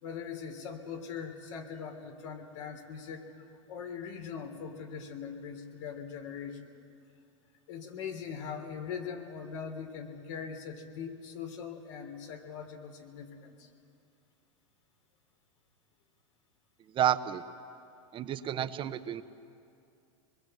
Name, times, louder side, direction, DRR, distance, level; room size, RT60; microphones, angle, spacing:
voice 1, 0.0-6.7 7.7-13.7, left 6 dB, 70° left, 4 dB, 3.5 m, -41 dB
voice 2, 16.9-17.4 18.1-19.2, right 10 dB, 30° right, 10 dB, 1.0 m, -30 dB
25.5 x 22.0 x 8.0 m, 2.5 s
hypercardioid pair, 115°, 16 cm